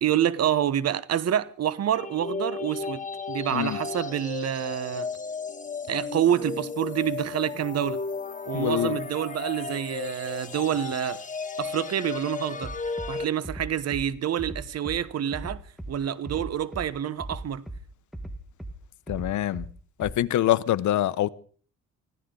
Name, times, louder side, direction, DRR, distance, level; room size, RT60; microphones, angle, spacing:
voice 1, 0.0-5.1 5.9-8.0 8.5-11.2 11.6-12.7 13.1-15.6 15.9-17.6, right 10 dB, 55° right, 1.0 m, -27 dB
sound 1, 1.9-13.2, left 4 dB, 25° left, 1.4 m, -34 dB
voice 2, 8.5-9.0 19.1-19.7 20.0-21.3, left 13 dB, 75° left, 0.9 m, -25 dB
Bass drum, 12.6-13.1 13.4-14.0 14.4-15.0 15.3-15.9 16.2-16.9 17.2-17.8 18.1-18.7 19.1-19.7 20.0-20.1, right 1 dB, ahead, 1.5 m, -37 dB
24.5 x 15.0 x 3.8 m
cardioid pair, 90°, 30 cm